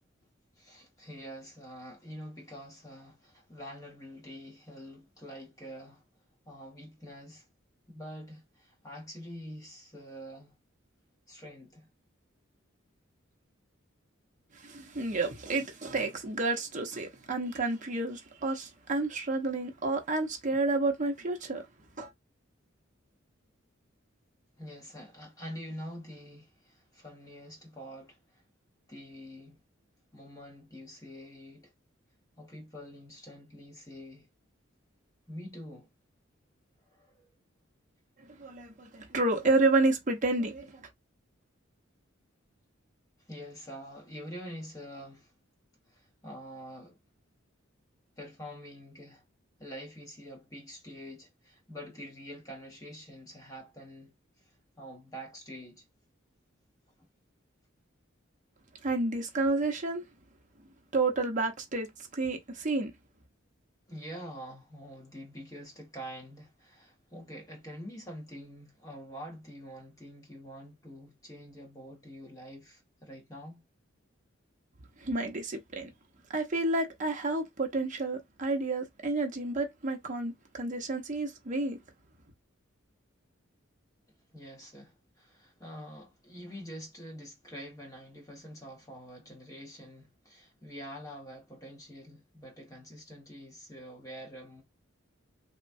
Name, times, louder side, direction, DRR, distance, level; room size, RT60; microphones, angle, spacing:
voice 1, 0.6-6.0 6.5-7.5 7.9-10.5 11.3-11.9 24.6-28.4 28.9-29.6 30.1-31.7 32.4-34.3 35.3-35.9 36.9-37.3 38.9-39.1 43.3-45.3 45.9-47.0 48.2-49.2 49.6-54.1 54.8-55.8 63.9-73.6 84.3-94.6, equal, 20° left, 1.3 m, -46 dB
voice 2, 14.5-21.7 22.0-22.1 38.2-40.9 58.8-60.0 60.9-62.9 75.0-75.9 76.3-81.8, right 2 dB, 40° right, 0.8 m, -30 dB
3.1 x 2.3 x 2.6 m
head